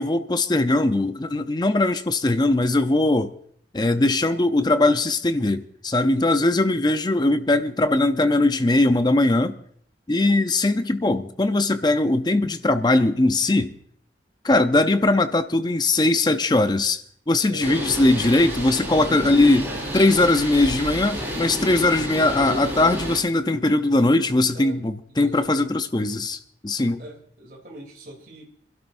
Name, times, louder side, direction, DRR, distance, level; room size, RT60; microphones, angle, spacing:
voice 1, 0.0-3.3 3.7-9.6 10.1-13.8 14.4-19.7 19.9-27.0, left 2 dB, 25° left, 0.6 m, -20 dB
voice 2, 17.4-18.0 19.2-19.6 24.5-24.8 25.1-25.8 27.0-28.4, equal, 55° right, 3.1 m, -41 dB
Bird, 17.6-23.2, equal, 10° right, 4.3 m, -30 dB
28.0 x 12.0 x 2.6 m
head